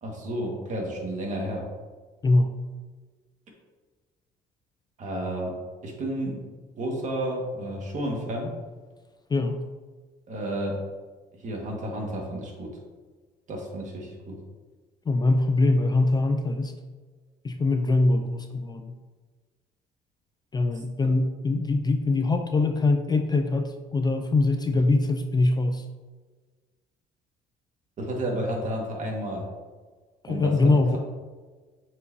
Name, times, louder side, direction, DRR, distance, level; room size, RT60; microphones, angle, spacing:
voice 1, 0.0-1.7 5.0-6.5 6.8-8.6 10.3-10.9 11.3-12.8 13.5-14.4 21.0-21.1 28.0-29.5 30.3-31.0, right 1 dB, 45° right, 0 dB, 1.8 m, -31 dB
voice 2, 9.3-9.7 15.1-16.7 17.4-18.9 20.5-25.9 30.2-31.0, left 2 dB, 25° left, 6 dB, 0.4 m, -23 dB
8.0 x 4.9 x 2.8 m, 1.4 s
cardioid pair, 110°, 17 cm